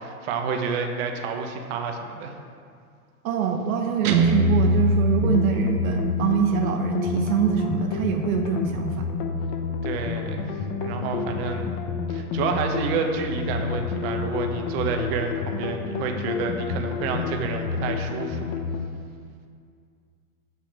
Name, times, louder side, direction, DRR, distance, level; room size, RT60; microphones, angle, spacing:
voice 1, 0.0-2.4 9.8-10.5 10.8-11.8 12.1-18.5, right 5 dB, 45° right, 4 dB, 1.2 m, -29 dB
voice 2, 3.2-9.1 11.2-11.3, right 6 dB, 70° right, 4 dB, 1.1 m, -24 dB
Guitar, 4.0-6.1, equal, 85° right, 1.2 m, -22 dB
sound 1, 5.1-18.9, left 5 dB, 35° left, 0.9 m, -29 dB
8.4 x 5.8 x 7.5 m, 2.2 s
hypercardioid pair, 145°, 44 cm